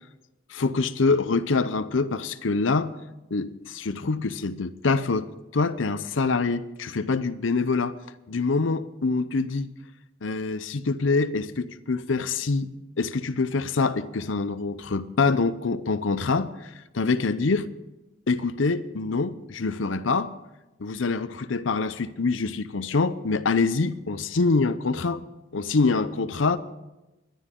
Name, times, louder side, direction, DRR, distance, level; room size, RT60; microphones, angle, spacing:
voice 1, 0.5-2.9 3.3-8.0 8.3-9.7 10.2-12.7 13.0-16.7 16.9-17.7 18.3-20.3 20.8-25.2 25.5-26.6, left 4 dB, 80° left, 0.7 m, -25 dB
27.0 x 11.5 x 3.8 m
head